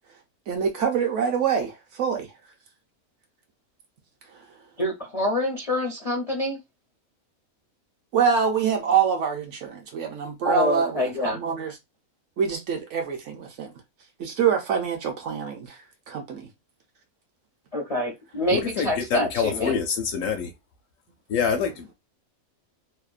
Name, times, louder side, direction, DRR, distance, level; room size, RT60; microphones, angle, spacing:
voice 1, 0.5-2.3 8.1-11.8 12.4-13.7 14.2-15.8 16.1-16.5, right 7 dB, 65° right, 0.9 m, -25 dB
voice 2, 4.8-6.6 10.4-11.4 17.7-19.8, left 1 dB, 50° left, 0.4 m, -26 dB
voice 3, 18.5-20.5 21.3-21.9, left 6 dB, 70° left, 0.9 m, -26 dB
2.8 x 2.1 x 2.4 m
omnidirectional pair, 1.5 m